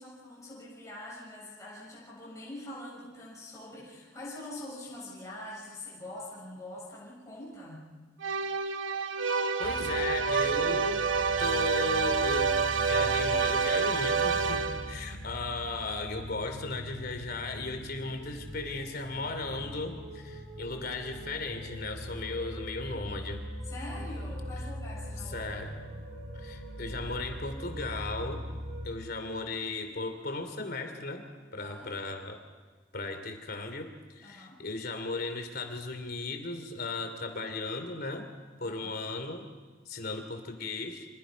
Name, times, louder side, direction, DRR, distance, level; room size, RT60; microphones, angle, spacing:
voice 1, 0.0-7.9 23.6-25.8 31.6-31.9 34.2-34.6 38.6-39.0, left 1 dB, 15° left, -6 dB, 6.8 m, -44 dB
sound 1, 8.2-15.1, right 5 dB, 80° right, 1.1 m, -28 dB
voice 2, 9.6-11.0 11.4-23.4 25.3-25.7 26.3-28.4 28.8-31.2 31.5-32.4 32.9-38.3 38.6-39.4 39.9-41.1, left 3 dB, 55° left, 7 dB, 3.0 m, -36 dB
sound 2, 9.6-28.9, equal, 45° right, 6.7 m, -41 dB
27.5 x 26.5 x 5.3 m, 1.4 s
head